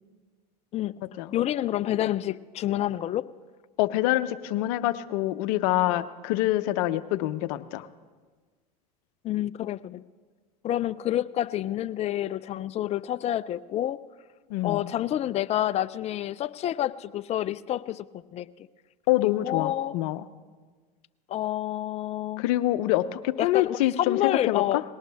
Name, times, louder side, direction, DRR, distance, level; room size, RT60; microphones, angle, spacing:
voice 1, 1.3-3.3 9.2-10.0 10.6-14.0 14.6-18.1 18.3-18.5 19.4-19.9 21.3-22.4 23.4-24.8, left 13 dB, 30° left, 15 dB, 0.5 m, -28 dB
voice 2, 3.8-7.9 14.5-14.9 19.1-20.2 22.4-24.6, left 15 dB, 65° left, 13 dB, 0.7 m, -26 dB
20.0 x 18.0 x 3.5 m, 1.5 s
hypercardioid pair, 100°, 21 cm